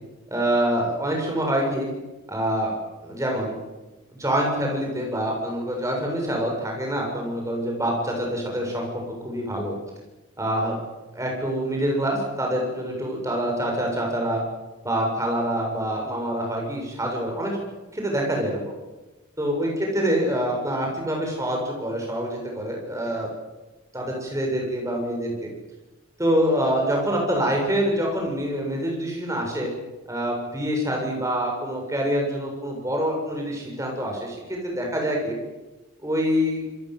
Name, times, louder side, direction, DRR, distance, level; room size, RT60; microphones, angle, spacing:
voice 1, 0.3-1.9 2.3-2.7 3.0-3.5 4.1-8.9 9.2-9.7 10.4-10.7 11.1-14.4 14.8-17.6 17.9-18.7 19.4-23.3 23.9-25.3 26.2-29.7 30.1-34.4 34.6-35.3 36.0-36.6, equal, 15° right, 0 dB, 7.5 m, -25 dB
27.5 x 22.5 x 8.1 m, 1.1 s
head